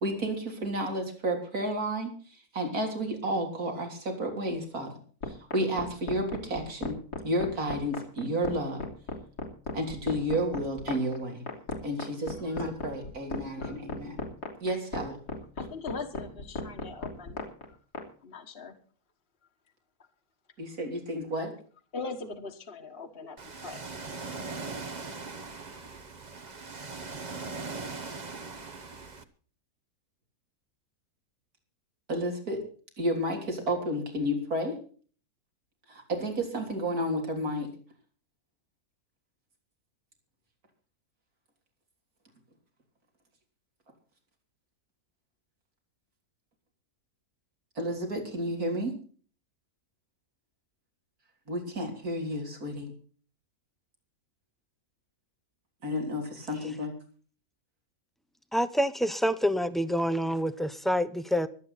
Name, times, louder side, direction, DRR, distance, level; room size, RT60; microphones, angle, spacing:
voice 1, 0.0-2.1 2.5-4.9 5.5-7.0 7.2-8.8 9.7-11.5 11.8-14.2 14.6-15.2 20.6-21.5 32.1-32.6 33.0-34.8 35.9-37.7 47.8-48.9 51.5-52.9 55.8-56.9, equal, 70° right, 4.0 m, -31 dB
sound 1, 5.2-18.0, left 3 dB, 90° left, 3.5 m, -35 dB
voice 2, 13.4-13.8 15.6-17.5 18.2-18.8 21.9-23.8, left 4 dB, 40° left, 1.7 m, -41 dB
Ocean, 23.4-29.2, right 4 dB, 30° right, 1.2 m, -40 dB
voice 3, 58.5-61.5, equal, ahead, 0.5 m, -27 dB
24.0 x 8.8 x 4.1 m
omnidirectional pair, 1.6 m